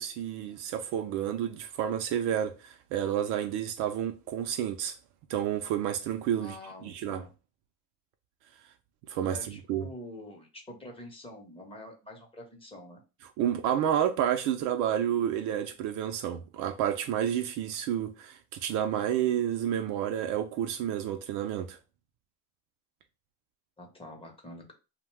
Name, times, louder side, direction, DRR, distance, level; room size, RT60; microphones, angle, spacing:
voice 1, 0.0-5.0 5.3-6.5 6.8-7.2 9.1-9.9 13.4-21.8, right 10 dB, 55° right, 0.4 m, -30 dB
voice 2, 6.4-7.3 9.3-13.0 23.8-24.7, left 1 dB, 15° left, 0.7 m, -46 dB
2.7 x 2.1 x 3.1 m
supercardioid pair, 115°, 37 cm